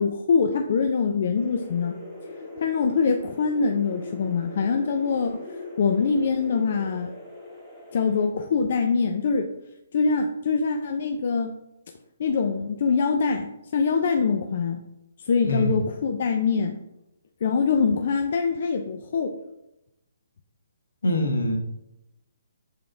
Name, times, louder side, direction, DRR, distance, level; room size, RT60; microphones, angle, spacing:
voice 1, 0.0-2.0 2.6-5.4 5.8-7.1 7.9-9.5 9.9-11.5 12.2-14.8 15.2-16.8 17.4-19.4, left 5 dB, 50° left, 4 dB, 0.5 m, -24 dB
sound 1, 1.3-8.3, left 1 dB, 5° left, 1.8 m, -40 dB
voice 2, 15.5-15.8 21.0-21.6, left 1 dB, 80° left, 3 dB, 1.4 m, -23 dB
6.9 x 3.6 x 3.9 m, 0.89 s
hypercardioid pair, 160°, 0 cm